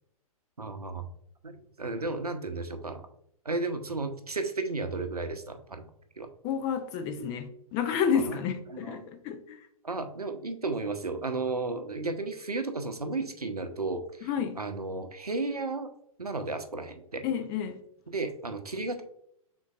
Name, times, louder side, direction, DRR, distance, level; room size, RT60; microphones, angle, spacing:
voice 1, 0.6-1.1 1.4-3.0 3.4-5.9 6.2-6.3 7.2-7.3 8.3-8.4 8.7-9.1 9.8-14.3 14.6-15.9 16.2-17.2 18.1-19.0, right 3 dB, 85° right, 0.6 m, -33 dB
voice 2, 6.4-9.6 14.2-14.6 17.2-17.8, left 7 dB, 20° left, 0.3 m, -30 dB
5.0 x 3.7 x 2.4 m
figure-of-eight pair, 115°, 19 cm